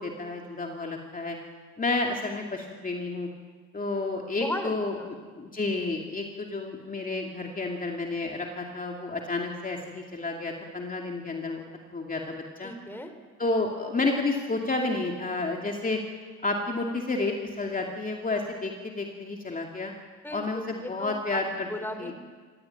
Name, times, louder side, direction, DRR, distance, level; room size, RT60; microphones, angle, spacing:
voice 1, 0.0-1.4 1.8-3.3 3.7-5.0 5.4-11.6 11.9-12.7 13.4-16.0 16.4-19.9 20.3-21.7 22.0-22.1, left 3 dB, 30° left, 1 dB, 2.6 m, -30 dB
voice 2, 4.4-5.1 12.6-13.1 20.2-22.1, left 1 dB, 5° left, 7 dB, 3.3 m, -36 dB
24.5 x 16.5 x 9.3 m, 1.5 s
cardioid pair, 90°, 30 cm